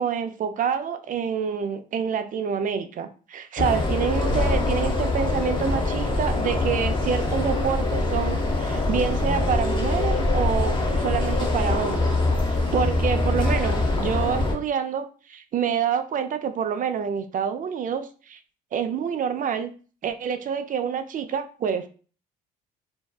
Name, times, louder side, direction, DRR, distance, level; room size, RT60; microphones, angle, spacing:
voice 1, 0.0-12.2 12.5-18.4 18.7-19.7 20.0-21.9, right 7 dB, 45° right, 9 dB, 0.4 m, -27 dB
sound 1, 3.6-14.5, left 2 dB, 25° left, 0.7 m, -24 dB
2.6 x 2.2 x 2.3 m, 0.38 s
hypercardioid pair, 60°, 20 cm